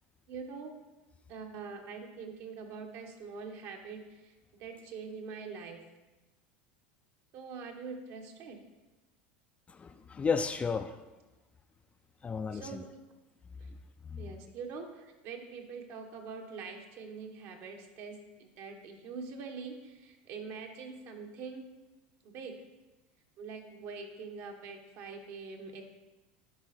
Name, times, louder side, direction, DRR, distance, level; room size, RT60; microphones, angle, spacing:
voice 1, 0.3-0.7 1.3-4.3 4.6-5.8 7.3-8.6 12.5-12.9 13.6-13.7 14.2-21.6 22.2-22.5 23.4-25.8, right 5 dB, 55° right, 3 dB, 1.4 m, -44 dB
voice 2, 9.7-11.0 12.2-12.8 13.7-13.8 14.0-14.3, left 5 dB, 20° left, 9 dB, 0.4 m, -33 dB
10.5 x 4.1 x 4.3 m, 1.1 s
hypercardioid pair, 100°, 6 cm